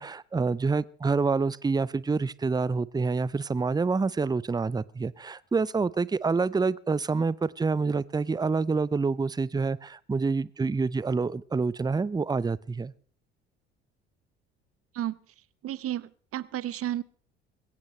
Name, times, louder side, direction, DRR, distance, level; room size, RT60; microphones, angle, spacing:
voice 1, 0.0-12.9, right 4 dB, 15° right, 0.6 m, -27 dB
voice 2, 15.6-17.0, right 12 dB, 45° right, 0.9 m, -32 dB
21.5 x 17.0 x 3.2 m
figure-of-eight pair, 50°, 32 cm